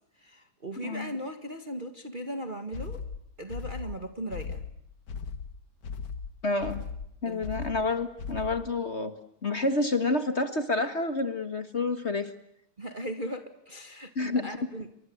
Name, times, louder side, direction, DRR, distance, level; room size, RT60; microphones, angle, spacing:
voice 1, 0.2-3.0 3.4-4.7 7.3-7.5 12.8-14.9, right 1 dB, 25° right, 6 dB, 2.0 m, -38 dB
voice 2, 0.8-1.1 6.4-6.8 7.2-9.1 9.4-12.3 14.2-14.6, left 2 dB, 35° left, 9 dB, 1.8 m, -29 dB
sound 1, 2.7-8.8, left 5 dB, 60° left, 1.9 m, -38 dB
30.0 x 24.0 x 7.9 m, 0.75 s
omnidirectional pair, 2.2 m